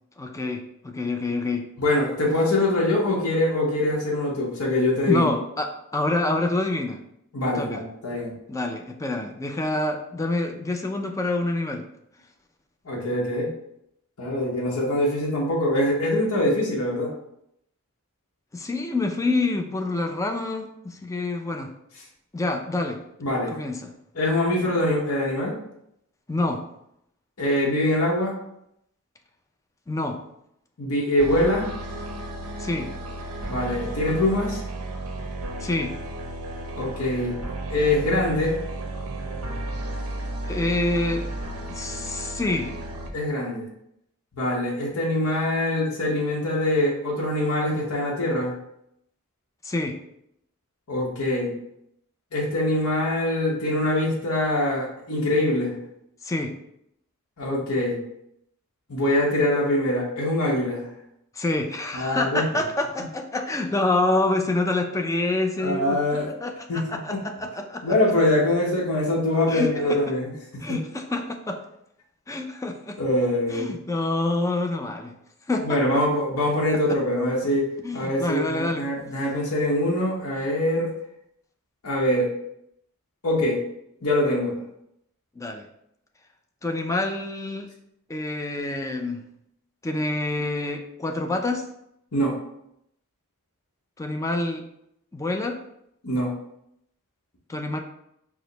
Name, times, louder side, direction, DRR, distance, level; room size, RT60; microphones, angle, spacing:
voice 1, 0.2-1.6 5.1-7.0 7.4-7.8 8.5-11.8 18.5-21.7 22.3-23.0 23.5-23.9 26.3-26.6 29.9-30.2 32.6-32.9 35.6-35.9 40.5-41.2 41.7-42.7 49.6-50.0 56.2-56.5 61.4-66.0 66.4-68.0 69.5-69.7 70.6-71.6 72.3-73.0 73.5-75.1 75.5-75.8 77.8-78.9 85.4-85.7 86.6-87.7 88.1-89.2 89.8-91.7 94.0-94.6 95.1-95.6 97.5-97.8, left 2 dB, 15° left, 5 dB, 0.3 m, -27 dB
voice 2, 1.8-5.3 7.3-8.3 12.8-13.5 14.2-17.1 23.2-23.5 24.1-25.6 27.4-28.4 30.8-31.7 33.5-34.6 36.7-37.4 37.7-38.6 43.1-43.7 44.3-48.5 50.9-51.5 52.3-55.8 57.4-58.0 58.9-60.9 61.9-62.5 65.6-66.3 66.7-66.8 67.1-67.2 67.8-70.3 70.7-70.8 73.0-73.7 75.6-77.7 77.9-80.9 81.8-82.3 83.2-83.6 84.0-84.6 92.1-92.4 96.0-96.3, left 1 dB, 80° left, -3 dB, 0.9 m, -23 dB
sound 1, 31.2-43.1, right 2 dB, 75° right, 0.6 m, -33 dB
4.8 x 2.1 x 3.9 m, 0.77 s
head